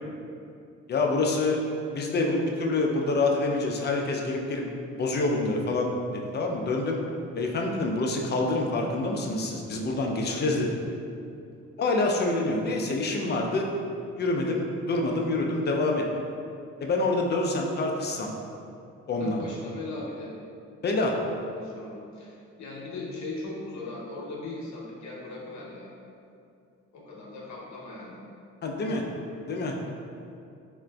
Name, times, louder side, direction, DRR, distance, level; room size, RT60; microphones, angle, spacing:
voice 1, 0.9-1.6 1.9-4.6 4.9-7.0 7.4-10.8 11.8-13.7 14.2-16.0 16.8-18.3 19.1-19.4 20.8-21.2 28.6-29.0 29.4-29.7, left 2 dB, 35° left, 1 dB, 0.4 m, -26 dB
voice 2, 10.2-10.5 19.2-20.3 21.3-25.9 26.9-28.2, left 2 dB, 65° left, -4 dB, 0.8 m, -39 dB
3.7 x 2.4 x 2.2 m, 2.5 s
cardioid pair, 90°, 30 cm